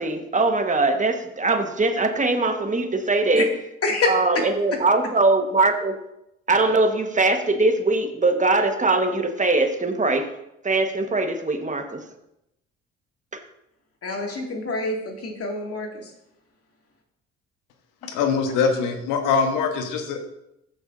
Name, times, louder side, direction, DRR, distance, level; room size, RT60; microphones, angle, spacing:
voice 1, 0.0-3.5 4.1-6.0 6.5-10.3 10.6-12.0 13.3-13.4, right 3 dB, 25° right, 6 dB, 1.4 m, -21 dB
voice 2, 3.8-4.4 14.0-15.0 15.2-16.1 18.0-18.1, left 3 dB, 45° left, 1 dB, 2.4 m, -26 dB
voice 3, 18.0-20.2, left 5 dB, 75° left, 6 dB, 1.3 m, -23 dB
14.0 x 6.2 x 2.7 m, 0.83 s
hypercardioid pair, 55°, 31 cm